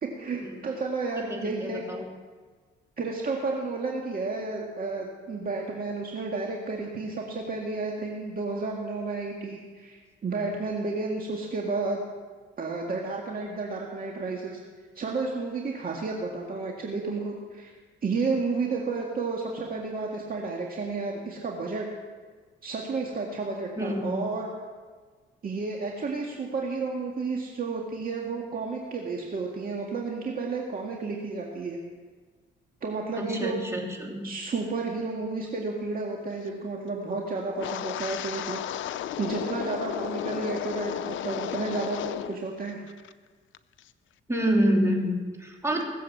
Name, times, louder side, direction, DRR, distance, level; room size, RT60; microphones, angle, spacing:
voice 1, 0.0-1.8 3.0-12.0 12.6-14.6 15.0-17.7 18.0-21.9 22.6-24.5 25.4-31.8 32.8-33.6 34.2-38.6 39.2-42.8, right 3 dB, 45° right, -1 dB, 2.0 m, -31 dB
voice 2, 1.1-2.1 23.8-24.2 33.1-34.2 44.3-45.8, equal, 15° right, 0 dB, 3.1 m, -27 dB
Wind, 37.6-42.4 42.7-43.1 43.5-43.8, left 12 dB, 75° left, 0.6 m, -34 dB
19.0 x 7.7 x 7.3 m, 1.5 s
cardioid pair, 90°, 20 cm